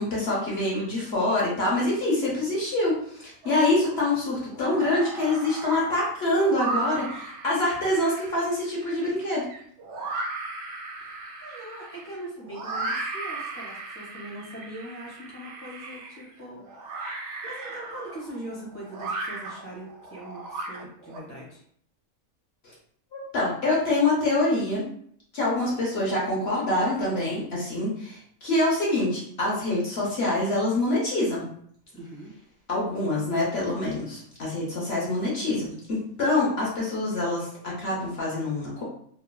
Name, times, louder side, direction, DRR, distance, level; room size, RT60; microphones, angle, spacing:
voice 1, 0.0-9.4 23.1-24.9 25.3-31.5 32.7-38.8, left 2 dB, 55° left, -5 dB, 0.9 m, -25 dB
sound 1, 3.4-4.1 4.5-21.2, right 3 dB, 65° right, 0.8 m, -36 dB
voice 2, 11.0-16.6 17.4-21.6 31.9-32.3, right 1 dB, 25° right, -6 dB, 0.6 m, -41 dB
3.0 x 2.3 x 2.2 m, 0.63 s
omnidirectional pair, 1.5 m